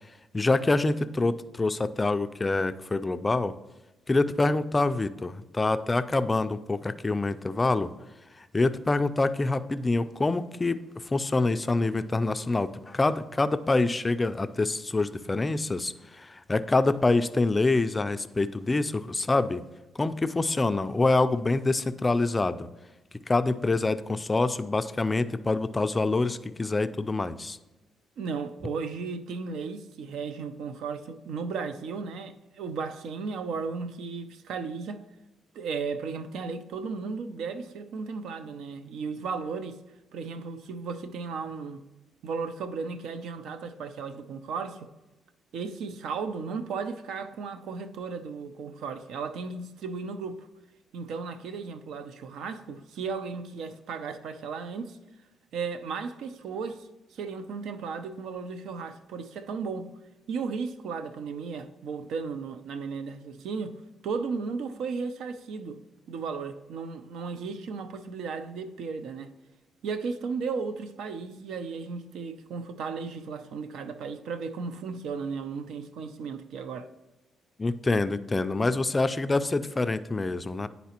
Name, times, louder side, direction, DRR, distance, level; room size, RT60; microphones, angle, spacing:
voice 1, 0.3-3.5 4.1-7.9 8.4-19.6 20.0-22.7 23.3-27.6 77.6-80.7, left 3 dB, 20° left, 0.3 m, -26 dB
voice 2, 28.2-35.0 35.5-39.8 40.1-41.8 42.2-44.9 45.5-50.5 50.9-55.0 55.5-59.9 60.3-65.8 66.1-69.3 69.8-76.9, right 5 dB, 80° right, 0.5 m, -35 dB
10.0 x 4.0 x 2.9 m
cardioid pair, 90°, 0 cm